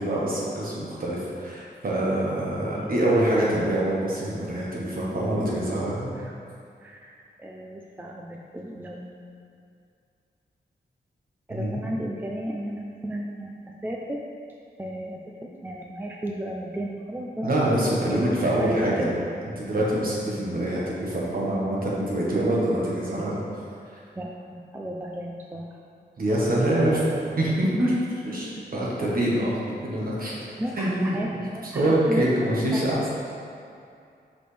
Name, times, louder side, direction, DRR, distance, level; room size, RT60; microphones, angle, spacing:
voice 1, 0.0-6.1 11.5-11.8 17.4-19.1 19.6-23.4 26.2-27.0 27.4-30.3 30.8-33.1, right 1 dB, 55° right, -6 dB, 1.4 m, -25 dB
voice 2, 6.8-9.1 11.5-14.2 14.8-17.5 18.1-19.1 24.2-25.7 27.8-27.9 30.6-31.3 31.5-32.2 32.7-32.9, right 1 dB, 10° right, -1 dB, 0.4 m, -34 dB
5.9 x 5.1 x 3.3 m, 2.4 s
wide cardioid pair, 140°, 18 cm